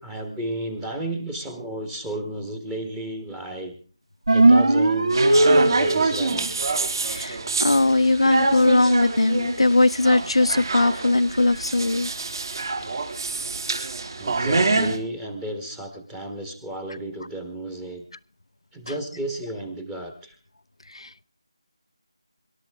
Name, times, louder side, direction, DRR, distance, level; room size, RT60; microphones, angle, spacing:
voice 1, 0.0-3.7 4.3-6.5 14.2-18.0 18.7-20.4, right 1 dB, 10° right, 1.4 m, -33 dB
sound 1, 4.3-6.2, right 2 dB, 70° right, 1.7 m, -17 dB
sound 2, 5.1-15.0, right 3 dB, 50° right, 3.6 m, -26 dB
voice 2, 7.1-12.1 20.9-21.2, left 2 dB, 80° left, 0.7 m, -20 dB
25.5 x 12.0 x 3.6 m
figure-of-eight pair, 165°, 3 cm